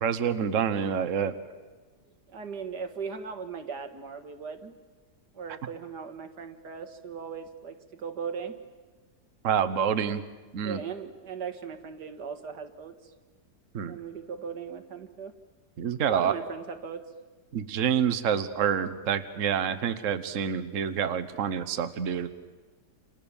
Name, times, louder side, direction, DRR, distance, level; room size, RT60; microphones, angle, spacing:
voice 1, 0.0-1.3 9.4-10.2 10.5-10.8 13.7-14.0 15.8-16.3 17.5-22.3, right 8 dB, 55° right, 10 dB, 1.4 m, -27 dB
voice 2, 2.3-4.7 5.3-8.6 10.6-12.9 13.8-15.3 16.1-17.0, right 6 dB, 85° right, 7 dB, 2.2 m, -38 dB
29.5 x 27.5 x 7.2 m, 1.3 s
omnidirectional pair, 1.7 m